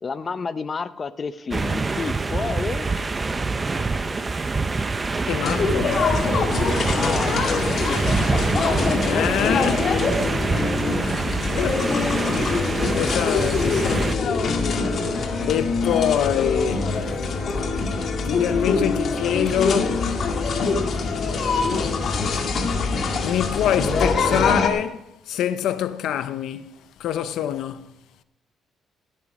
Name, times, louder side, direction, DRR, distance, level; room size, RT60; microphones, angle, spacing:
voice 1, 0.0-2.9 6.7-9.5 11.3-11.4, left 5 dB, 35° left, 0.8 m, -31 dB
sound 1, 1.5-14.1, right 3 dB, 25° right, 0.9 m, -25 dB
voice 2, 5.3-6.1 9.0-9.9 11.6-11.9 12.5-12.6 12.9-14.2 15.5-17.0 18.2-20.1 23.2-27.9, left 10 dB, 80° left, 0.7 m, -25 dB
sound 2, 5.4-24.7, left 4 dB, 60° left, 2.1 m, -24 dB
17.5 x 9.4 x 4.9 m
cardioid pair, 90°, 0 cm